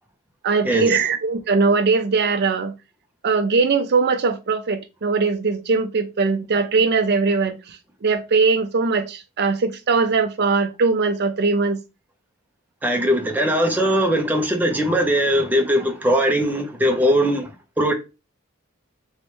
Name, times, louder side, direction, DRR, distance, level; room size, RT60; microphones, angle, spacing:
voice 1, 0.4-2.7 3.2-7.6 8.0-11.8, right 4 dB, 50° right, 0.5 m, -20 dB
voice 2, 12.8-17.5 17.8-17.9, equal, 10° right, 0.7 m, -20 dB
3.1 x 3.1 x 3.1 m
head